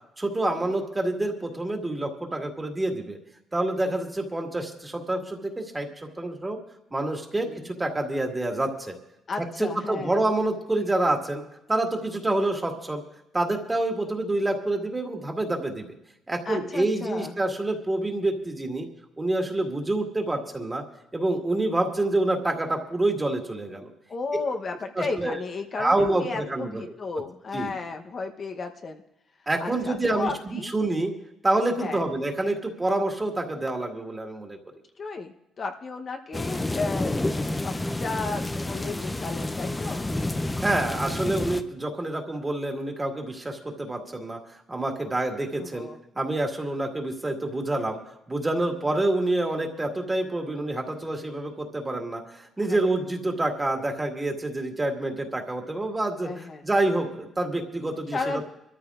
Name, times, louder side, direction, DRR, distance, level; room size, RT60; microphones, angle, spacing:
voice 1, 0.2-3.2 3.5-6.6 6.9-8.9 9.6-11.4 11.7-13.0 13.3-15.9 16.3-18.9 19.2-20.8 21.1-23.9 25.0-25.4 25.8-26.8 27.5-27.7 29.5-31.1 31.4-34.6 40.6-45.9 46.1-48.0 48.3-58.2, right 2 dB, 20° right, 2 dB, 2.0 m, -27 dB
voice 2, 9.3-10.3 10.8-10.9 16.5-17.4 24.1-29.0 29.6-30.7 31.8-32.0 35.0-37.7 38.0-40.0 45.6-46.0 52.6-52.9 56.2-56.6 58.1-58.4, left 4 dB, 45° left, 4 dB, 0.9 m, -34 dB
sound 1, 36.3-41.6, left 2 dB, 15° left, 0.6 m, -29 dB
25.0 x 13.5 x 2.5 m, 0.85 s
cardioid pair, 90°, 0 cm